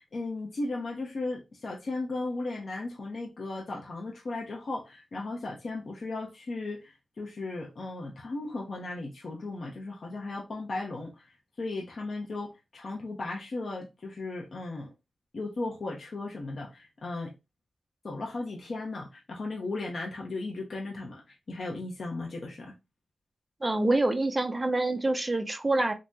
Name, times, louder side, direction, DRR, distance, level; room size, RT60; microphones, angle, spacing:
voice 1, 0.0-14.9 15.3-17.3 18.0-22.7, left 2 dB, 55° left, 0.6 m, -36 dB
voice 2, 23.6-25.9, right 2 dB, 20° right, 0.4 m, -26 dB
3.4 x 2.0 x 2.6 m
wide cardioid pair, 100°, 0 cm